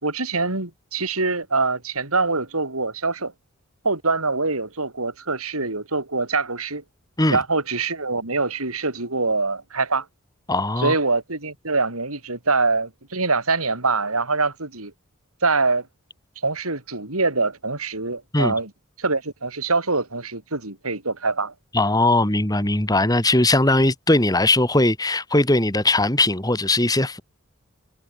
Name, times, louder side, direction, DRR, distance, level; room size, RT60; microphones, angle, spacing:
voice 1, 0.0-3.3 3.8-6.8 7.3-10.1 10.8-14.9 15.4-15.9 16.4-18.7 19.0-21.5, right 3 dB, 85° right, 5.6 m, -24 dB
voice 2, 10.5-10.9 18.3-18.5 21.7-27.2, left 2 dB, 15° left, 2.7 m, -19 dB
head